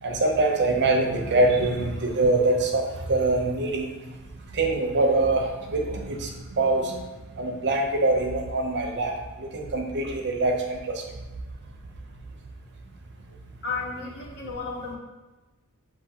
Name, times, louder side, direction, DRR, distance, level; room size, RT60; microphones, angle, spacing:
voice 1, 0.0-3.9 4.5-7.0 7.4-11.0, right 2 dB, 50° right, 2 dB, 0.6 m, -24 dB
voice 2, 13.6-15.0, left 4 dB, 50° left, -4 dB, 1.2 m, -33 dB
7.0 x 2.7 x 2.8 m, 1.2 s
head